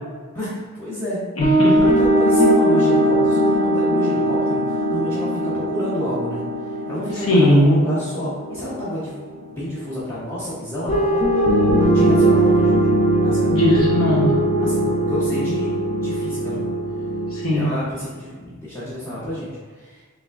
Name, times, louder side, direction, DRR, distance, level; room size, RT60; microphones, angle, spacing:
voice 1, 0.3-1.2 1.9-11.2 11.9-12.7 13.2-13.6 14.6-15.7 16.0-16.6 17.5-20.0, left 1 dB, 15° left, -13 dB, 0.9 m, -29 dB
voice 2, 1.4-1.7 7.3-7.8 13.5-14.3 17.3-17.7, left 1 dB, 85° left, -6 dB, 1.0 m, -17 dB
sound 1, 1.4-9.5 10.9-17.5, right 1 dB, 35° left, 0.6 m, -20 dB
3.5 x 3.3 x 3.6 m, 1.5 s
head